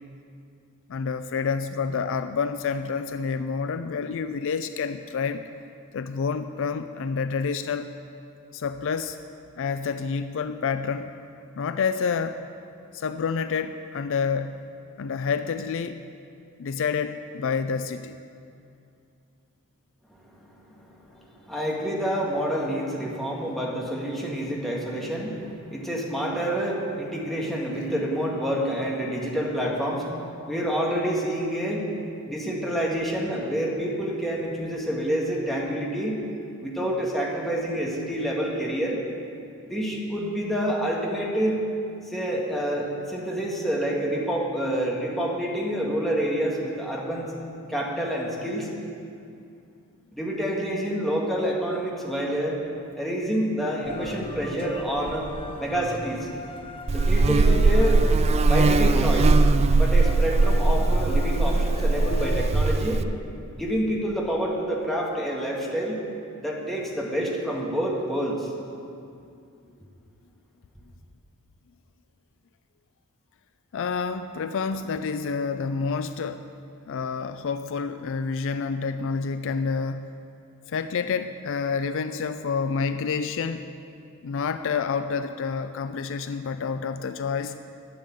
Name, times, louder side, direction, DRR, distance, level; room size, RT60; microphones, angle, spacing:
voice 1, 0.9-5.5 5.9-7.9 8.5-9.2 9.6-11.2 11.6-12.4 12.9-14.7 15.0-16.0 16.6-18.2 73.7-76.5 76.9-80.1 80.7-83.7 84.2-87.6, left 5 dB, 60° left, 10 dB, 0.4 m, -28 dB
voice 2, 20.1-20.8 21.1-30.1 30.5-31.9 32.2-36.2 36.6-39.0 39.6-41.6 42.1-47.3 47.7-48.7 50.1-52.6 52.9-55.3 55.6-56.3 56.9-58.0 58.4-59.3 59.7-63.0 63.5-66.0 66.4-68.5, equal, ahead, -3 dB, 1.7 m, -28 dB
sound 1, 53.8-62.5, left 1 dB, 25° left, 0.6 m, -38 dB
Buzz, 56.9-63.0, right 3 dB, 30° right, 0.3 m, -20 dB
11.0 x 7.0 x 9.1 m, 2.5 s
head